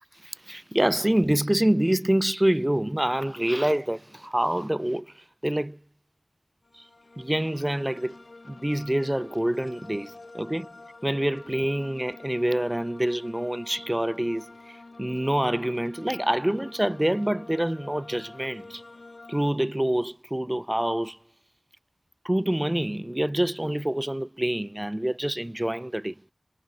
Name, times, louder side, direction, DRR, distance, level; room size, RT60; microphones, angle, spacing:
voice 1, 0.2-5.8 6.7-6.9 7.2-8.2 8.5-10.7 11.0-18.8 19.3-21.2 22.2-26.2, right 1 dB, 20° right, 0.4 m, -26 dB
sound 1, 6.6-19.5, left 3 dB, 65° left, 0.4 m, -47 dB
wide cardioid pair, 40°, 0 cm